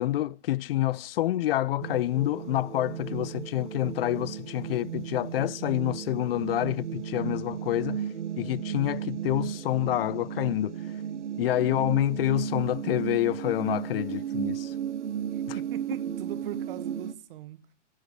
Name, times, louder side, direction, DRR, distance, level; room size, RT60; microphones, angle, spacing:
voice 1, 0.0-8.1 8.4-10.8 11.4-14.7 15.5-15.6, left 14 dB, 55° left, 0.5 m, -28 dB
sound 1, 1.8-17.1, right 9 dB, 75° right, 1.1 m, -34 dB
voice 2, 15.3-17.7, right 11 dB, 50° right, 1.2 m, -41 dB
11.0 x 5.5 x 8.6 m
hypercardioid pair, 115°, 35 cm